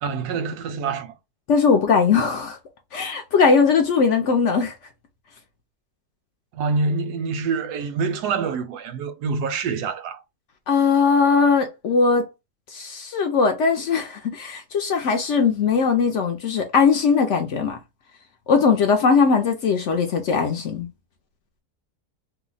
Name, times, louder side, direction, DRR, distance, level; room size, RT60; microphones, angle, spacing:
voice 1, 0.0-1.2 6.5-10.2, right 4 dB, 85° right, 1.2 m, -26 dB
voice 2, 1.5-2.6 2.9-4.7 10.7-12.3 12.7-17.8 18.5-20.9, left 5 dB, 65° left, 0.8 m, -19 dB
2.8 x 2.1 x 3.8 m
omnidirectional pair, 1.6 m